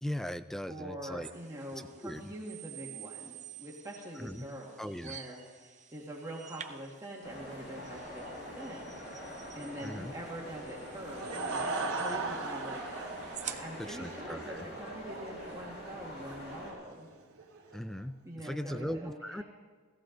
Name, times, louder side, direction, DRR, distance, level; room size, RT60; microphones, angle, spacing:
voice 1, 0.0-1.3 1.8-2.3 4.2-4.5 4.8-5.2 9.8-10.1 13.8-14.7 17.7-19.4, equal, ahead, 13 dB, 0.3 m, -39 dB
voice 2, 0.7-8.2 8.6-8.9 9.5-11.6 11.9-13.2 13.4-17.1 18.2-19.4, right 1 dB, 15° right, -4 dB, 1.7 m, -44 dB
sound 1, 1.2-14.0, right 9 dB, 35° right, 0.7 m, -50 dB
sound 2, 7.2-16.7, equal, 55° left, 4.3 m, -45 dB
Laughter / Crowd, 10.8-17.8, right 3 dB, 85° right, 2.4 m, -39 dB
17.0 x 15.0 x 3.9 m, 1.5 s
head